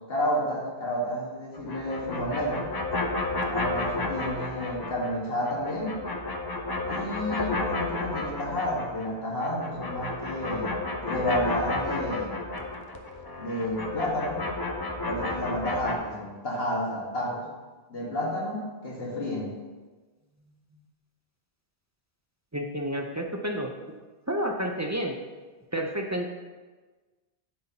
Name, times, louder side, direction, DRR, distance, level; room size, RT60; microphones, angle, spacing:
voice 1, 0.1-2.7 3.5-6.0 6.9-10.7 11.0-12.4 13.4-14.4 15.1-17.5 17.9-19.5, equal, 70° left, -5 dB, 1.9 m, -30 dB
sound 1, 1.6-5.1 5.4-9.1 9.4-16.0, left 2 dB, 30° left, 0.5 m, -32 dB
voice 2, 22.5-23.7 24.3-25.1 25.7-26.3, equal, 25° right, 2 dB, 0.4 m, -30 dB
9.5 x 5.5 x 2.9 m, 1.3 s
omnidirectional pair, 1.0 m